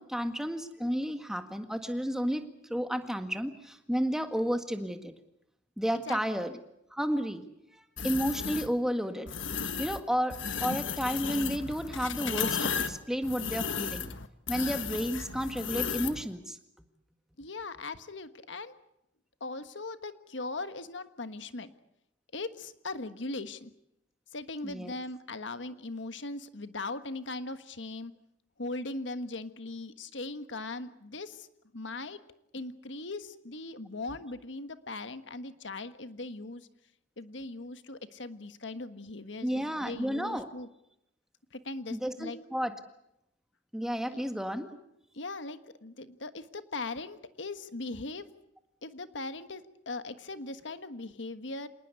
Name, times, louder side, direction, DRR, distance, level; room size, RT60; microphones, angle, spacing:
voice 1, 0.0-5.1 5.8-6.5 6.9-7.4 7.7-9.3 9.8-10.3 10.6-14.1 14.5-16.6 24.6-24.9 39.4-40.5 41.9-42.7 43.7-44.8, equal, 5° right, 7 dB, 1.8 m, -32 dB
voice 2, 6.1-6.4 17.4-18.7 19.4-21.7 22.3-23.7 24.3-28.1 28.6-31.5 31.7-32.2 32.5-36.7 37.2-40.7 41.5-42.4 44.1-44.3 45.1-48.3 48.8-51.7, left 2 dB, 70° left, 10 dB, 1.5 m, -39 dB
sound 1, 8.0-8.7 9.3-10.0 10.3-16.2, left 6 dB, 85° left, 1.5 m, -34 dB
27.0 x 19.5 x 8.3 m, 0.82 s
head